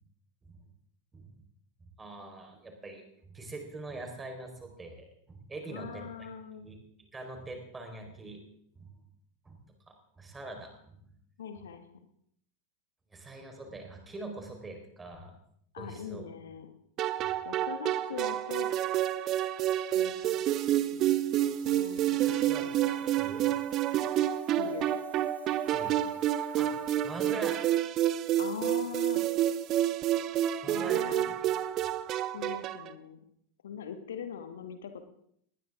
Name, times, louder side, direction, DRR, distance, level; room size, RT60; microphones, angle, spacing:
voice 1, 2.0-6.1 6.6-6.8 7.1-8.4 8.7-9.0 9.4-11.1 13.1-15.4 15.7-16.2 22.3-22.7 23.1-23.5 25.7-26.0 26.3-27.6 30.5-31.4, right 2 dB, 15° right, 3 dB, 4.6 m, -43 dB
voice 2, 5.7-6.7 11.4-11.9 15.7-16.7 17.4-18.7 19.9-20.4 20.9-21.1 21.4-23.2 24.6-24.9 28.4-29.2 30.6-31.3 32.3-33.2 33.6-35.0, left 7 dB, 60° left, 7 dB, 1.8 m, -42 dB
sound 1, 17.0-32.9, right 12 dB, 35° right, 0.9 m, -29 dB
sound 2, 21.2-27.6, right 2 dB, 85° right, 6.8 m, -58 dB
20.0 x 19.0 x 3.8 m, 0.68 s
figure-of-eight pair, 90°, 0 cm